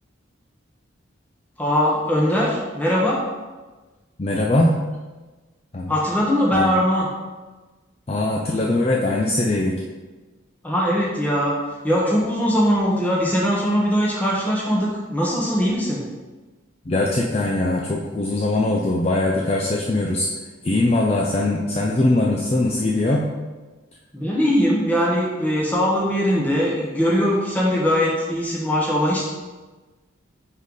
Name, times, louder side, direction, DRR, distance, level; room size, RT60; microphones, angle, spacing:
voice 1, 1.6-3.2 5.9-7.1 10.6-11.5 11.8-16.0 24.1-29.2, equal, 10° left, -5 dB, 1.2 m, -21 dB
voice 2, 4.2-4.8 5.7-5.9 6.5-6.6 8.1-9.8 16.9-20.3 20.6-23.3, left 2 dB, 30° left, -2 dB, 0.4 m, -21 dB
5.4 x 4.4 x 4.8 m, 1.3 s
head